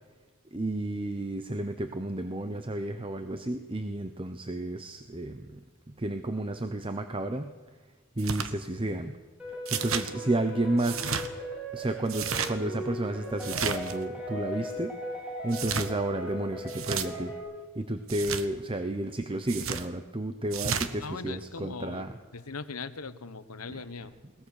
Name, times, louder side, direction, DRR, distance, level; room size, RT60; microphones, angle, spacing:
voice 1, 0.5-5.6 6.0-7.6 8.2-9.2 9.7-11.1 11.7-14.9 15.4-17.3 17.8-22.1, right 1 dB, 25° right, 8 dB, 0.9 m, -32 dB
sound 1, 8.2-8.5 9.7-10.1 10.8-11.3 12.1-12.5 13.4-14.0 15.5-15.9 16.7-17.1 18.1-18.4 19.5-19.9 20.5-20.9, right 7 dB, 65° right, 1.3 m, -32 dB
sound 2, 9.4-17.4, equal, 5° right, 7.6 m, -38 dB
voice 2, 21.0-24.1, left 4 dB, 90° left, 12 dB, 1.1 m, -40 dB
22.0 x 18.5 x 6.7 m, 1.3 s
head